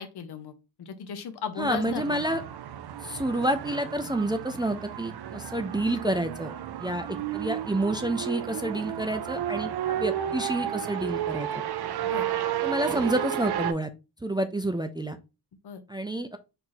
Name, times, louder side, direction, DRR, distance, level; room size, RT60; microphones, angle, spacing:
voice 1, 0.0-2.4 12.0-12.3 15.6-15.8, left 6 dB, 85° left, 9 dB, 0.8 m, -36 dB
voice 2, 1.6-2.4 3.0-6.5 6.8-11.5 12.6-13.9 14.2-15.2 15.9-16.4, right 1 dB, 10° right, 6 dB, 0.4 m, -29 dB
sound 1, 1.6-13.7, right 11 dB, 80° right, 0.5 m, -32 dB
4.5 x 2.6 x 3.9 m, 0.28 s
wide cardioid pair, 105°, 38 cm